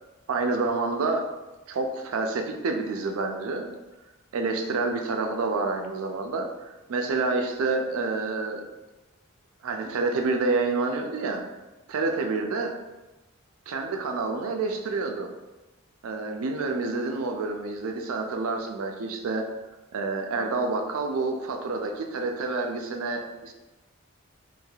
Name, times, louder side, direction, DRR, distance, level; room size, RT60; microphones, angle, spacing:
voice 1, 0.3-1.2 1.7-3.7 4.3-6.5 6.9-8.6 9.6-11.4 11.9-12.7 13.7-15.3 16.0-19.4 19.9-23.5, right 3 dB, 90° right, 3 dB, 0.4 m, -28 dB
3.2 x 2.5 x 2.3 m, 1.1 s
head